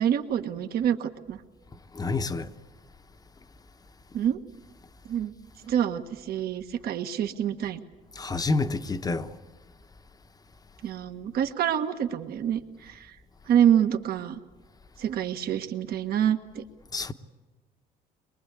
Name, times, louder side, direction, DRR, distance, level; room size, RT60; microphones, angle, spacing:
voice 1, 0.0-1.4 4.1-4.4 5.1-5.3 5.6-7.8 10.8-13.1 13.5-14.4 15.0-16.6, right 9 dB, 65° right, 1.6 m, -26 dB
voice 2, 2.0-2.5 8.2-9.3 16.9-17.1, left 3 dB, 20° left, 1.0 m, -28 dB
23.0 x 22.0 x 8.4 m
cardioid pair, 110°, 17 cm